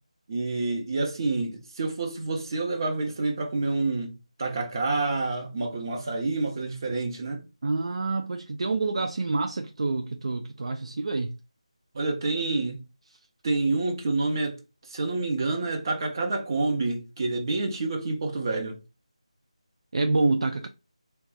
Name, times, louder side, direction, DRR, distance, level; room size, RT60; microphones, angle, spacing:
voice 1, 0.3-4.1 4.4-7.4 11.9-12.8 13.4-14.6 14.9-18.8, right 3 dB, 35° right, 0.9 m, -28 dB
voice 2, 7.6-11.4 19.9-20.7, right 3 dB, 55° right, 0.4 m, -27 dB
3.9 x 2.3 x 3.8 m
figure-of-eight pair, 160°, 4 cm